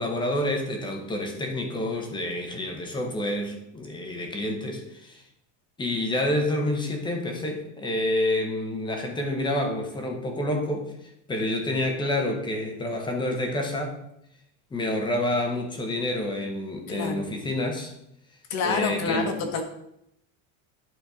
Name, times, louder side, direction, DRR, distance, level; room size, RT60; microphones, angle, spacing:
voice 1, 0.0-5.2 5.8-10.9 11.3-14.0 14.7-17.9 18.6-19.3, left 1 dB, 10° left, 3 dB, 1.0 m, -28 dB
voice 2, 16.9-17.3 18.5-19.6, left 5 dB, 45° left, 6 dB, 1.3 m, -28 dB
11.0 x 4.4 x 4.9 m, 0.78 s
cardioid pair, 180°, 39 cm